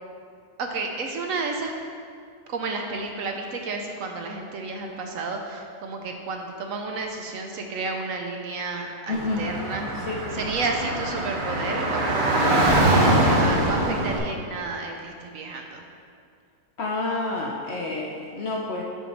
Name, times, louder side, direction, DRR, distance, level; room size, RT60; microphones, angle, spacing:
voice 1, 0.6-1.7 2.5-9.9 10.3-15.8, right 3 dB, 65° right, 3 dB, 0.9 m, -31 dB
voice 2, 9.1-9.5 10.0-10.5 16.8-18.8, left 2 dB, 60° left, -1 dB, 0.7 m, -29 dB
Car / Traffic noise roadway noise, 9.1-14.2, right 1 dB, 45° right, 0.7 m, -23 dB
6.2 x 4.5 x 5.2 m, 2.2 s
omnidirectional pair, 1.6 m